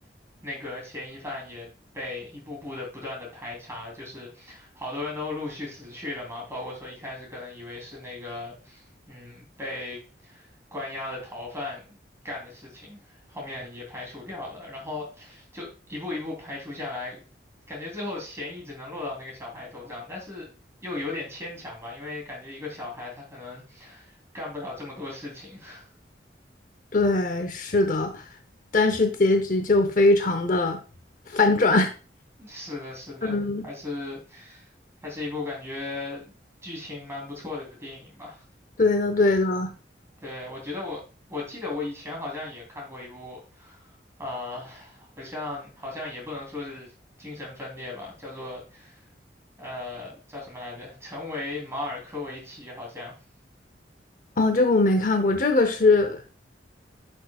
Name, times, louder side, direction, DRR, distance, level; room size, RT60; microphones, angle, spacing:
voice 1, 0.4-10.5 10.7-11.8 12.2-17.2 17.7-20.5 20.8-25.9 32.4-34.7 35.0-36.3 36.6-38.4 39.2-39.4 40.2-41.0 41.3-43.9 44.2-46.9 47.2-49.0 49.6-53.1, left 2 dB, 15° right, -1 dB, 3.2 m, -37 dB
voice 2, 26.9-28.2 28.7-30.8 31.3-31.9 33.2-33.6 38.8-39.7 54.4-56.3, left 2 dB, 45° left, 7 dB, 0.7 m, -21 dB
10.5 x 6.3 x 2.4 m, 0.35 s
head